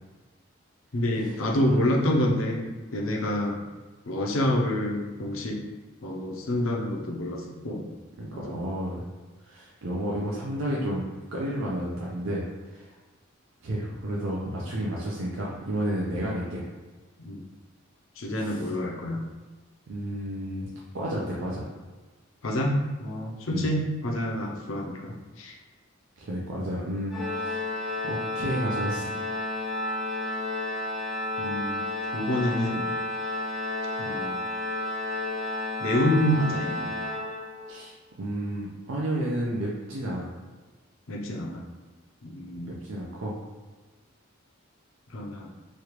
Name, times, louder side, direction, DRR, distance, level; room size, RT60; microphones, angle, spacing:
voice 1, 0.9-3.6 4.1-5.6 6.0-7.9 8.3-8.6 17.2-17.4 18.2-19.2 22.4-25.6 31.4-31.8 32.1-32.8 34.0-34.4 35.8-36.9 41.1-41.6 42.2-42.7 45.1-45.5, left 1 dB, 65° left, -1 dB, 0.6 m, -27 dB
voice 2, 8.2-9.0 9.4-11.0 11.3-12.9 13.6-16.6 18.4-18.7 19.9-21.7 23.5-23.6 26.2-27.6 28.0-29.1 37.7-40.3 42.7-43.4, right 1 dB, 65° right, -4 dB, 0.5 m, -31 dB
Organ, 27.1-37.9, left 1 dB, ahead, 0.4 m, -31 dB
3.1 x 2.4 x 3.0 m, 1.3 s
head